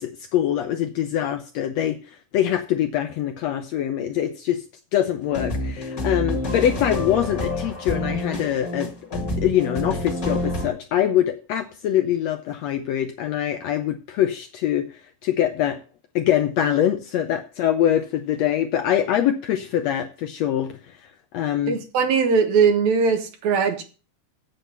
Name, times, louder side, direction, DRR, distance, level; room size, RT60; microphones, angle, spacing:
voice 1, 0.0-2.0 2.3-4.6 4.9-15.8 16.1-21.0 21.3-21.8, left 11 dB, 75° left, 7 dB, 1.6 m, -24 dB
sound 1, 5.2-10.7, left 1 dB, 30° left, 1.9 m, -28 dB
voice 2, 21.7-23.8, right 5 dB, 65° right, 7 dB, 2.3 m, -20 dB
8.0 x 7.7 x 6.7 m, 0.35 s
omnidirectional pair, 3.7 m